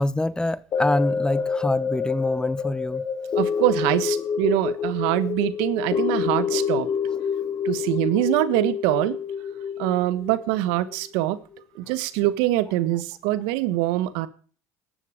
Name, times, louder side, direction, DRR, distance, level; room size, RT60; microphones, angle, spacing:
voice 1, 0.0-3.0, left 1 dB, 10° left, 0.9 m, -25 dB
sound 1, 0.7-11.1 11.5-11.6, left 6 dB, 45° left, 2.4 m, -27 dB
voice 2, 3.3-6.9 7.6-9.2 9.8-11.4 11.7-14.3, right 15 dB, 75° right, 1.4 m, -24 dB
17.0 x 13.0 x 5.2 m
supercardioid pair, 80°, 8 cm